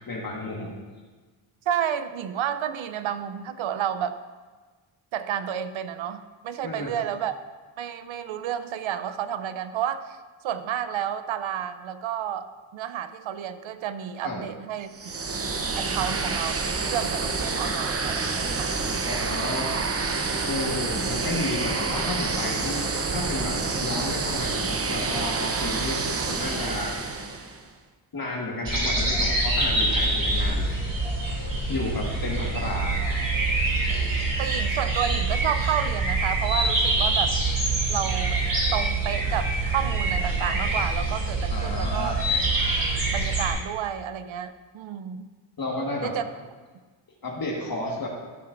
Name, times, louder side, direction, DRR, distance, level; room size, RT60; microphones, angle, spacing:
voice 1, 0.1-0.7 6.6-6.9 14.2-14.4 19.0-20.1 20.4-22.8 23.1-26.0 26.3-27.0 28.1-30.9 31.2-33.0 41.5-42.2 45.6-46.1 47.2-48.1, left 2 dB, 45° left, -2 dB, 1.6 m, -32 dB
voice 2, 1.7-4.2 5.1-7.3 7.8-10.2 10.4-12.5 12.7-15.4 15.8-18.8 34.4-37.4 37.9-38.4 38.7-42.1 43.1-45.3 46.0-46.2, right 9 dB, 75° right, 11 dB, 0.7 m, -31 dB
sound 1, 14.9-27.6, right 4 dB, 30° right, 0.8 m, -28 dB
sound 2, 28.7-43.5, right 2 dB, 45° right, 2.6 m, -25 dB
13.0 x 7.0 x 2.6 m, 1.4 s
cardioid pair, 65°, 47 cm